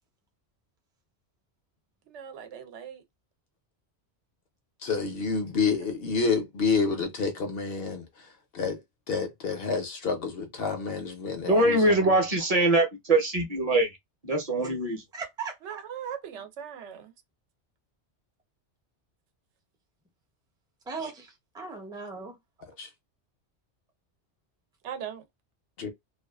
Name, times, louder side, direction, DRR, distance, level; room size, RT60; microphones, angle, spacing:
voice 1, 2.1-3.0 15.6-17.1 24.8-25.2, right 8 dB, 80° right, 0.9 m, -39 dB
voice 2, 4.8-8.3 8.5-8.8 9.1-12.2 22.8-22.9 25.8-25.9, left 5 dB, 65° left, 0.7 m, -29 dB
voice 3, 11.5-13.9 14.2-15.0, right 2 dB, 40° right, 0.7 m, -23 dB
voice 4, 15.1-15.8 20.9-22.4, right 5 dB, 5° right, 0.4 m, -38 dB
2.3 x 2.3 x 2.3 m
omnidirectional pair, 1.2 m